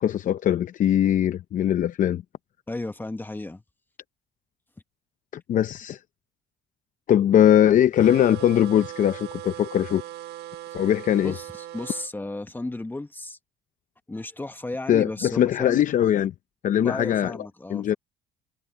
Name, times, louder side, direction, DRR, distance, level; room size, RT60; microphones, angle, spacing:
voice 1, 0.0-2.2 5.3-6.0 7.1-10.0 10.7-11.3 14.9-16.3 16.6-17.3 17.7-17.9, left 10 dB, 50° left, 0.7 m, -21 dB
voice 2, 2.7-3.6 11.2-13.4 14.1-15.8 16.8-18.0, left 2 dB, 10° left, 1.2 m, -34 dB
sound 1, 8.0-12.1, right 13 dB, 75° right, 1.7 m, -39 dB
cardioid pair, 110°, 17 cm